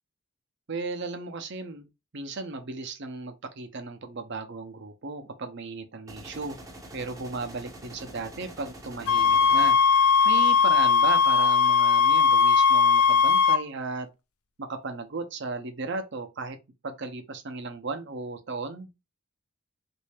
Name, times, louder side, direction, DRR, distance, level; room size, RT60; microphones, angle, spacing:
voice 1, 0.7-1.9 2.1-6.6 6.9-9.8 10.2-14.1 14.6-16.6 16.8-18.9, right 3 dB, 55° right, 0.7 m, -35 dB
sound 1, 6.1-10.1, right 1 dB, 15° right, 0.6 m, -45 dB
sound 2, 9.1-13.6, left 6 dB, 85° left, 0.4 m, -19 dB
3.2 x 2.6 x 3.3 m
head